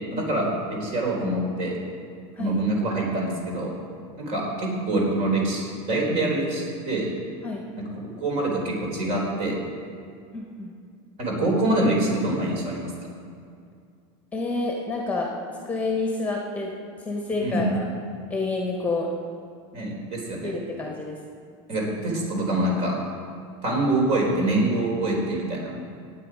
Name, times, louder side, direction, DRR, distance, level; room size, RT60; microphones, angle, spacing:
voice 1, 0.1-1.8 2.4-3.7 4.2-7.1 7.8-9.6 11.2-12.9 17.4-17.7 19.7-20.5 21.7-23.0 23.6-25.7, right 1 dB, 45° right, -1 dB, 4.0 m, -25 dB
voice 2, 10.3-10.7 14.3-15.3 15.6-16.7 17.0-17.8 18.3-19.1 20.4-21.2, left 3 dB, 10° left, 0 dB, 1.4 m, -28 dB
17.5 x 9.2 x 5.0 m, 2.3 s
supercardioid pair, 150°, 16 cm